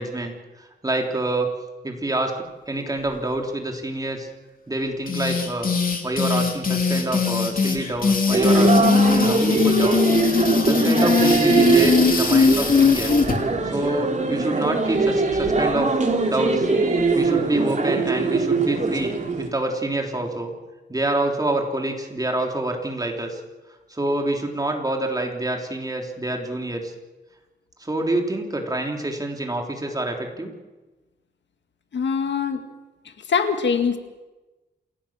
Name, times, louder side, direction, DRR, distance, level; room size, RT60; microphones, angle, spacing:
voice 1, 0.0-1.5 1.8-4.3 4.7-5.7 6.0-10.1 10.6-13.1 13.6-16.0 16.3-16.7 17.1-20.5 20.9-23.4 23.9-26.9 27.8-30.5, right 1 dB, 20° right, 2 dB, 3.3 m, -27 dB
sound 1, 5.1-13.4, left 4 dB, 50° left, 3.1 m, -20 dB
sound 2, 8.3-19.5, right 4 dB, 40° right, 3.1 m, -22 dB
voice 2, 31.9-32.6 33.3-34.0, left 6 dB, 80° left, 7 dB, 1.9 m, -22 dB
28.0 x 16.5 x 7.4 m, 1.2 s
wide cardioid pair, 120°, 18 cm